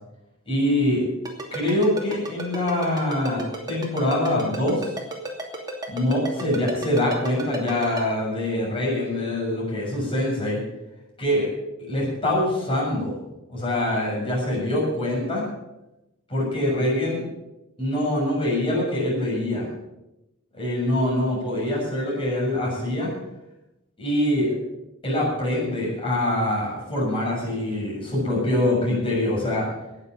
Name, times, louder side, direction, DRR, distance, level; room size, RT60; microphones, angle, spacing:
voice 1, 0.5-1.1 1.5-4.9 5.9-10.6 11.2-11.5 11.9-13.2 13.5-15.5 16.3-17.2 17.8-19.7 20.5-23.1 24.0-24.5 25.0-29.7, left 1 dB, 25° left, -4 dB, 7.1 m, -24 dB
Ringtone, 1.3-8.0, right 2 dB, 20° right, 2.6 m, -32 dB
18.5 x 7.5 x 7.1 m, 0.94 s
head